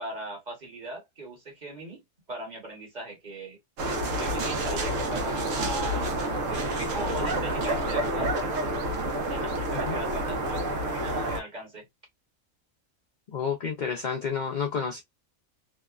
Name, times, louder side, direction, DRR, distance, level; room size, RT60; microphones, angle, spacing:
voice 1, 0.0-2.0 2.3-3.6 4.2-6.2 6.5-8.8 9.3-11.9, right 2 dB, 35° right, 1.1 m, -39 dB
sound 1, 3.8-11.4, right 1 dB, 75° right, 1.0 m, -29 dB
voice 2, 13.3-15.0, left 6 dB, 65° left, 0.4 m, -30 dB
2.8 x 2.1 x 2.3 m
omnidirectional pair, 1.4 m